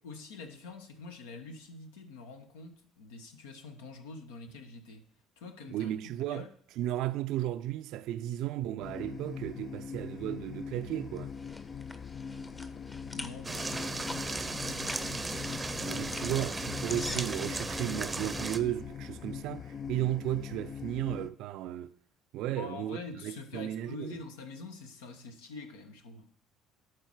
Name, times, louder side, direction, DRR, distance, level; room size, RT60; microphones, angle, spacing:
voice 1, 0.0-5.1 5.4-5.9 6.2-6.5 12.1-15.3 22.5-26.3, left 3 dB, 80° left, 1.0 m, -46 dB
voice 2, 5.7-6.4 6.8-11.3 15.8-21.9 22.3-23.0 23.2-24.2, right 13 dB, 65° right, 0.4 m, -34 dB
sound 1, 8.8-21.3, left 7 dB, 45° left, 0.4 m, -42 dB
sound 2, 10.9-18.0, left 2 dB, 20° left, 0.9 m, -46 dB
sound 3, 13.4-18.6, right 3 dB, 20° right, 0.7 m, -36 dB
11.5 x 4.5 x 4.8 m
hypercardioid pair, 60°, 0 cm